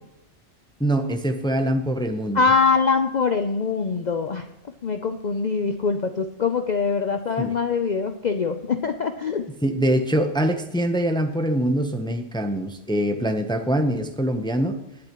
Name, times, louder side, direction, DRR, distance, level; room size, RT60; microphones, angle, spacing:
voice 1, 0.8-2.4 7.4-7.5 9.6-14.8, right 1 dB, 5° left, 6 dB, 0.7 m, -23 dB
voice 2, 2.3-4.5 4.8-9.5, left 5 dB, 45° left, 7 dB, 0.6 m, -23 dB
19.0 x 8.6 x 3.0 m, 0.90 s
omnidirectional pair, 1.3 m